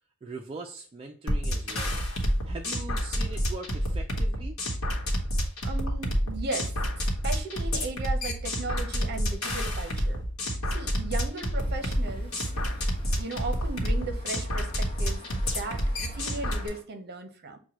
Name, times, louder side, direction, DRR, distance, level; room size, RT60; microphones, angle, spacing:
voice 1, 0.2-2.0 2.5-4.6, right 3 dB, 25° right, 1 dB, 0.3 m, -41 dB
sound 1, 1.3-16.7, equal, 90° left, 1.1 m, -29 dB
voice 2, 5.6-10.2 10.7-12.5 13.2-15.8 16.1-17.6, right 3 dB, 50° right, 5 dB, 0.7 m, -37 dB
sound 2, 11.5-16.8, left 2 dB, 25° left, 0.9 m, -50 dB
6.0 x 2.2 x 2.9 m, 0.43 s
head